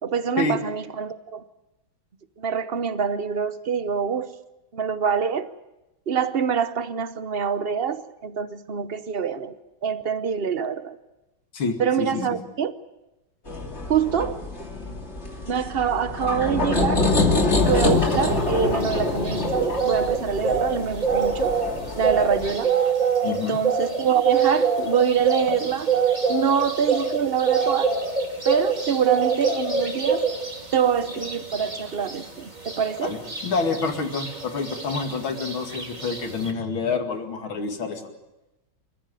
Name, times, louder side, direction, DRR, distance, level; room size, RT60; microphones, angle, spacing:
voice 1, 0.0-1.4 2.4-4.3 4.7-5.6 6.1-11.0 11.8-12.7 13.9-14.4 15.4-21.6 22.0-22.8 23.2-25.9 26.3-27.9 28.4-30.3 30.7-33.2, right 7 dB, 50° right, 0.7 m, -25 dB
voice 2, 11.5-12.4 23.2-23.6 33.0-33.2 33.4-38.1, left 4 dB, 75° left, 3.0 m, -27 dB
sound 1, 13.5-22.5, left 3 dB, 30° left, 2.8 m, -25 dB
sound 2, 17.7-36.5, right 5 dB, 20° right, 2.8 m, -26 dB
28.0 x 14.5 x 9.2 m
omnidirectional pair, 2.3 m